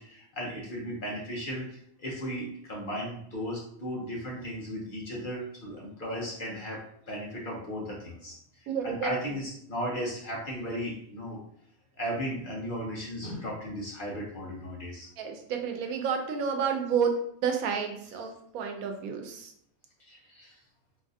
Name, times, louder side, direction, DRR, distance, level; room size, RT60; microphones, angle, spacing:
voice 1, 0.0-6.8 7.1-8.4 8.8-11.4 12.0-15.1 20.0-20.5, equal, 45° left, -3 dB, 0.8 m, -36 dB
voice 2, 8.7-9.4 15.2-17.2 17.4-19.5, right 6 dB, 90° right, 4 dB, 1.1 m, -30 dB
3.9 x 2.4 x 2.6 m, 0.68 s
omnidirectional pair, 1.5 m